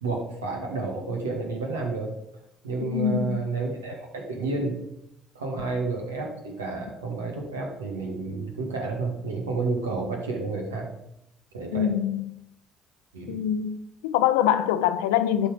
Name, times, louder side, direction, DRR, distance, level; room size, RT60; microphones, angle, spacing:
voice 1, 0.0-2.1 2.6-4.8 5.3-10.9 11.5-11.9 13.1-13.4, right 3 dB, 90° right, 1.7 m, -30 dB
voice 2, 2.8-3.4 11.7-12.2 13.3-15.5, left 10 dB, 80° left, 0.6 m, -24 dB
11.5 x 4.1 x 5.0 m
hypercardioid pair, 55°, 0 cm